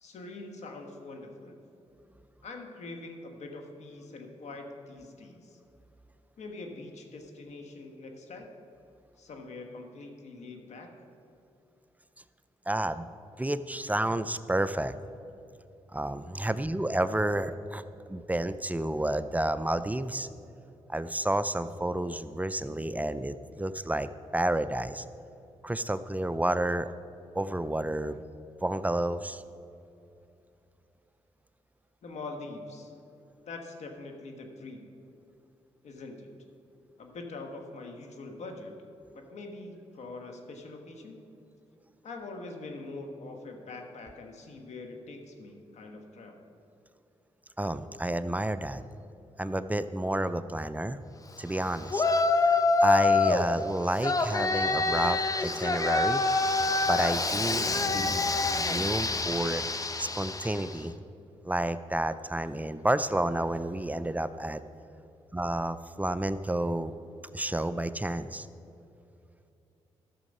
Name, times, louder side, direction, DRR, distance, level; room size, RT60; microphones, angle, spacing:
voice 1, 0.0-1.6 2.4-5.6 6.4-8.5 9.2-10.9 32.0-32.9 33.4-34.9 35.8-36.3 37.0-38.7 39.1-41.2 42.0-46.3, left 3 dB, 75° left, 3 dB, 1.4 m, -43 dB
voice 2, 12.7-13.1 13.4-15.0 15.9-20.3 20.9-25.0 25.6-26.9 27.3-28.2 28.6-29.4 47.6-48.8 49.4-51.0 51.4-52.0 52.4-56.2 56.9-58.2 58.6-59.6 60.0-60.9 61.4-64.6 65.3-66.9 67.3-68.5, right 1 dB, 15° right, 12 dB, 0.4 m, -30 dB
Yell, 51.9-53.5 54.0-60.7, left 3 dB, 30° left, 0.7 m, -26 dB
13.0 x 6.5 x 5.4 m, 2.8 s
cardioid pair, 65°, 12 cm